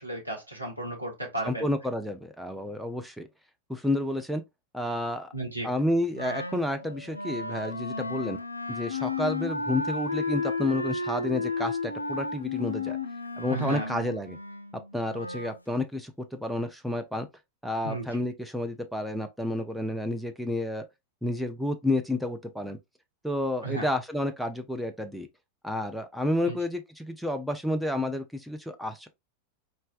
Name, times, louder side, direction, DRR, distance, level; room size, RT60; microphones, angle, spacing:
voice 1, 0.0-1.7 5.3-5.7 13.5-13.9 17.8-18.2 23.6-23.9 26.5-26.6, right 2 dB, 90° right, 1.4 m, -34 dB
voice 2, 1.4-3.3 3.7-4.4 4.7-5.3 5.6-8.4 8.7-13.0 13.4-14.4 14.9-17.3 17.6-20.8 21.2-22.8 23.2-25.3 25.6-29.1, left 1 dB, ahead, 0.6 m, -30 dB
Wind instrument woodwind instrument, 6.1-15.6, left 3 dB, 85° left, 0.4 m, -33 dB
4.2 x 3.3 x 2.4 m
figure-of-eight pair, 90°, 0 cm